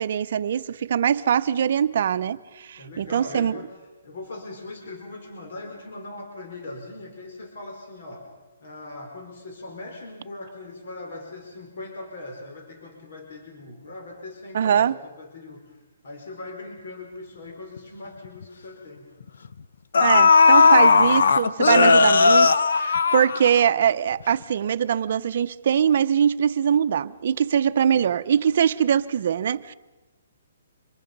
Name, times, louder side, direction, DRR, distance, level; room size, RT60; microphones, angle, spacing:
voice 1, 0.0-3.6 14.5-14.9 20.0-29.7, right 8 dB, 50° right, 0.7 m, -22 dB
voice 2, 2.7-3.7 4.0-8.3 8.6-19.1 27.9-28.0, left 2 dB, 55° left, 5.0 m, -40 dB
sound 1, 17.8-17.9 18.2-18.4 19.4-19.5 19.9-23.9 24.2-24.3, left 4 dB, 75° left, 1.0 m, -16 dB
26.0 x 23.0 x 5.4 m
hypercardioid pair, 165°, 0 cm